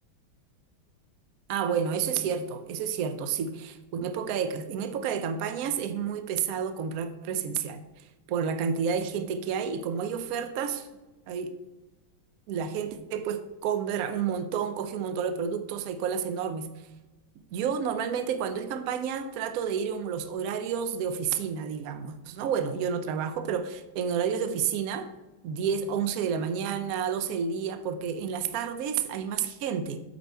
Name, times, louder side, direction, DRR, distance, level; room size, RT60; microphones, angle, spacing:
voice 1, 1.5-7.8 8.3-10.9 11.3-11.5 12.5-16.7 17.5-25.1 25.4-30.0, right 7 dB, 75° right, 9 dB, 0.8 m, -30 dB
8.0 x 5.3 x 4.4 m, 1.1 s
omnidirectional pair, 2.3 m